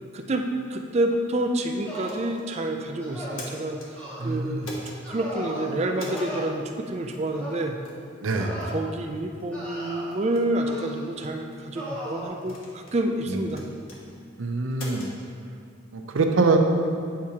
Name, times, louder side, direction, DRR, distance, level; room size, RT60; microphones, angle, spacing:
voice 1, 0.1-3.8 4.2-4.8 5.1-7.8 8.7-13.6, right 1 dB, 35° right, 4 dB, 0.4 m, -28 dB
sound 1, 1.9-2.3 3.0-3.5 4.0-4.2 5.0-5.7 6.1-6.4 7.3-7.6 8.3-8.7 9.5-10.2 10.7-11.1 11.7-12.3, equal, 10° left, 1.4 m, -36 dB
sound 2, 2.0-2.5 3.1-3.9 4.6-5.0 5.9-6.3 7.1-7.3 7.8-8.1 8.6-8.8 9.4-9.5 10.1-10.4 11.2-11.6 12.4-13.0 13.5-14.0 14.7-15.1, left 1 dB, 85° left, 1.1 m, -42 dB
voice 2, 4.2-4.7 8.2-8.6 13.3-13.4 14.4-15.0 15.9-16.6, right 3 dB, 85° right, 4 dB, 0.6 m, -24 dB
8.7 x 4.7 x 2.9 m, 2.3 s
head